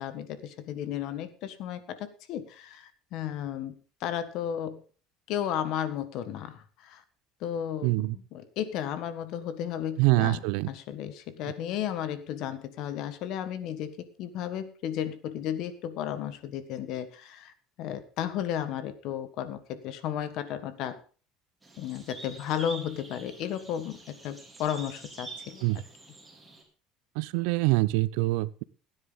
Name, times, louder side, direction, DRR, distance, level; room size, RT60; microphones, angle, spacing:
voice 1, 0.0-4.8 5.3-7.0 7.4-21.0 21.8-25.6, left 10 dB, 60° left, 12 dB, 1.5 m, -34 dB
voice 2, 7.8-8.2 10.0-10.7 25.6-25.8 27.2-28.6, right 21 dB, 85° right, 20 dB, 0.5 m, -25 dB
sound 1, 21.6-26.6, right 3 dB, 10° right, 3.7 m, -46 dB
16.5 x 9.8 x 4.0 m, 0.39 s
cardioid pair, 140°, 0 cm